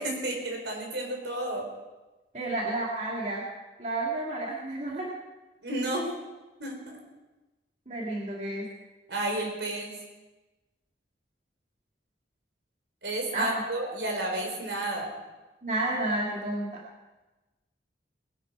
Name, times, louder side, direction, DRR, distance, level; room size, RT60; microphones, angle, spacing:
voice 1, 0.0-1.7 5.6-6.1 6.6-7.0 9.1-9.9 13.0-15.1, right 1 dB, 75° right, 1 dB, 4.0 m, -31 dB
voice 2, 2.3-3.4 3.8-5.1 7.9-8.7 13.3-13.5 15.6-16.8, right 2 dB, 40° right, -4 dB, 2.2 m, -31 dB
20.5 x 11.5 x 4.8 m, 1.1 s
head